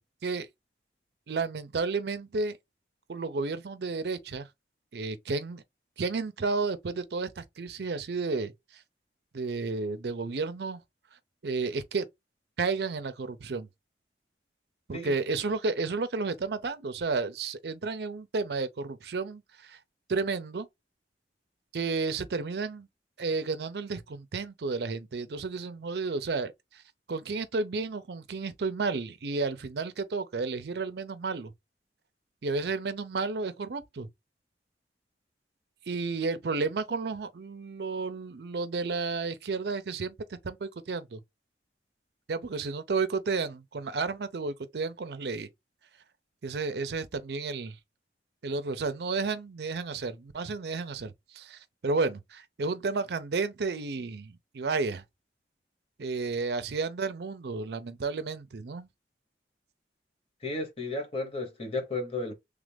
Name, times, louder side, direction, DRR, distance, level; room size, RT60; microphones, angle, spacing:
voice 1, 1.3-2.6 3.1-4.5 4.9-5.6 6.0-8.5 9.3-10.8 11.4-12.1 12.6-13.7 14.9-19.4 19.7-19.8 20.1-20.7 21.7-22.9 23.2-26.5 27.1-31.5 32.4-34.1 35.9-41.2 42.3-45.5 46.4-47.8 48.4-55.0 56.0-58.9, right 4 dB, 70° right, 0.5 m, -32 dB
voice 2, 60.4-62.3, left 2 dB, 35° left, 1.0 m, -33 dB
3.3 x 2.5 x 3.4 m
head